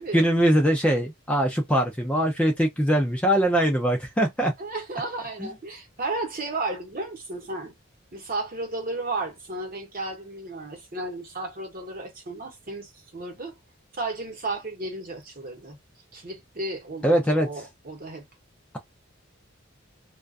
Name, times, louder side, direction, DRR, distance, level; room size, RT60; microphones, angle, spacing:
voice 1, 0.1-4.5 5.4-5.5 17.0-17.5, right 1 dB, 5° left, 0.3 m, -22 dB
voice 2, 4.6-7.7 8.1-13.5 14.0-15.8 16.1-18.2, right 2 dB, 45° right, 0.9 m, -33 dB
2.4 x 2.2 x 2.3 m
head